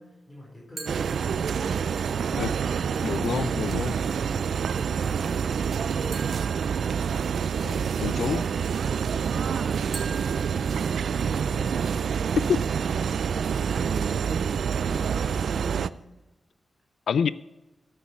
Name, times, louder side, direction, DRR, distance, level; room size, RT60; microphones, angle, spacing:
voice 1, 0.0-2.9 3.7-6.3 10.2-12.3 13.9-16.0, left 1 dB, 20° left, -4 dB, 4.4 m, -45 dB
sound 1, 0.8-2.1 6.1-7.6 9.9-11.6, right 4 dB, 50° right, 2.2 m, -44 dB
sound 2, 0.9-15.9, right 7 dB, 80° right, 0.4 m, -27 dB
voice 2, 3.0-3.9 7.6-8.4 12.5-12.6 17.1-17.3, left 7 dB, 85° left, 17 dB, 0.3 m, -27 dB
13.5 x 8.9 x 4.5 m, 1.1 s
wide cardioid pair, 150°, 0 cm